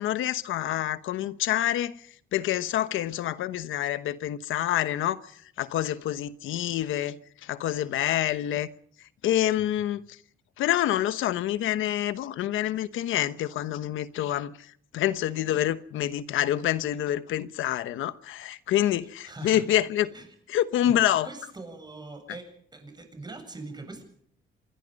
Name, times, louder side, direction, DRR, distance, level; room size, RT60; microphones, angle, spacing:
voice 1, 0.0-2.1 2.3-7.2 7.4-8.7 9.2-10.2 10.6-14.5 14.9-20.1 20.5-21.3, left 12 dB, 85° left, 1.1 m, -27 dB
voice 2, 19.2-19.6 20.1-20.3 20.9-24.0, right 3 dB, 20° right, 7.8 m, -42 dB
26.5 x 21.0 x 5.3 m
cardioid pair, 90°, 20 cm